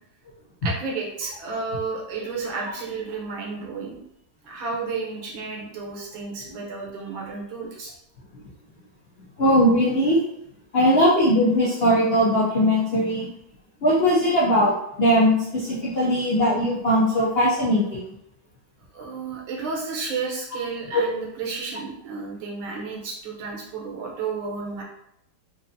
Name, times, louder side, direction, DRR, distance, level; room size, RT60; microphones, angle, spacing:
voice 1, 0.6-4.0 4.4-7.9 18.9-24.8, right 4 dB, 80° right, -2 dB, 1.7 m, -32 dB
voice 2, 9.4-10.2 10.7-13.3 13.8-14.7 15.0-18.0 20.9-21.0, equal, 70° left, -7 dB, 0.5 m, -19 dB
4.5 x 2.5 x 2.7 m, 0.78 s
omnidirectional pair, 2.2 m